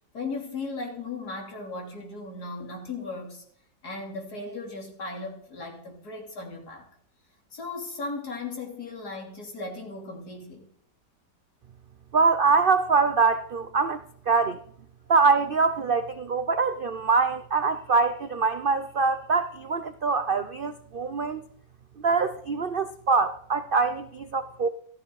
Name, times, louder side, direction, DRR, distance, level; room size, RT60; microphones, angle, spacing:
voice 1, 0.1-3.4 3.8-6.9 7.5-10.7, left 3 dB, 60° left, 0 dB, 3.7 m, -36 dB
voice 2, 12.1-14.0 14.3-14.6 15.1-21.4 22.0-24.7, right 4 dB, 75° right, 11 dB, 0.5 m, -24 dB
14.5 x 14.0 x 4.7 m, 0.65 s
omnidirectional pair, 1.9 m